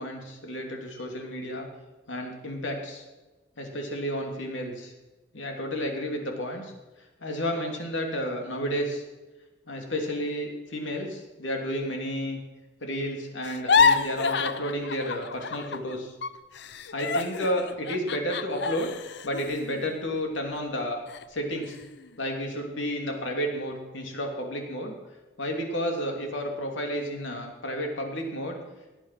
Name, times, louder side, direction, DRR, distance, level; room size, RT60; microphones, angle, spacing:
voice 1, 0.0-1.7 2.1-3.0 3.6-4.9 5.3-6.7 7.2-9.0 9.7-12.4 12.8-16.1 16.9-18.9 19.2-21.0 21.3-21.8 22.2-25.0 25.4-28.6, equal, 75° left, 2 dB, 2.9 m, -31 dB
sound 1, 13.4-16.0 16.2-20.6 21.1-21.3 21.6-22.1, left 5 dB, 60° left, 0.7 m, -28 dB
18.0 x 9.0 x 6.0 m, 1.2 s
head